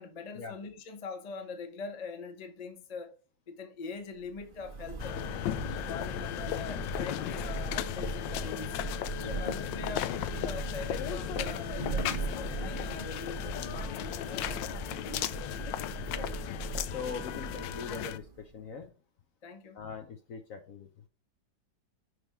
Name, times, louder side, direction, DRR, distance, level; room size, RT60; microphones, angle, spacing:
voice 1, 0.0-3.1 3.5-5.2 5.8-8.8 9.4-15.8 19.4-19.8, left 5 dB, 35° left, 0.6 m, -43 dB
Thunder / Rain, 4.2-18.6, right 4 dB, 45° right, 0.7 m, -39 dB
sound 1, 5.0-18.2, left 13 dB, 75° left, 1.2 m, -36 dB
voice 2, 16.9-18.9 19.7-20.9, left 5 dB, 60° left, 1.0 m, -41 dB
6.5 x 3.4 x 5.7 m
omnidirectional pair, 2.1 m